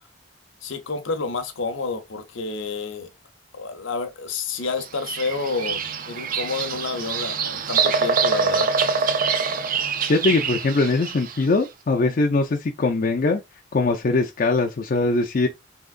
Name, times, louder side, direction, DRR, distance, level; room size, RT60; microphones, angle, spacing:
voice 1, 0.6-3.1 3.5-8.7 11.9-12.1, left 4 dB, 70° left, 0.8 m, -29 dB
Bird vocalization bird call bird song, 4.8-11.4, right 5 dB, 45° right, 0.4 m, -25 dB
voice 2, 10.1-13.4 13.7-15.5, left 3 dB, 45° left, 0.4 m, -21 dB
3.7 x 2.9 x 2.4 m
head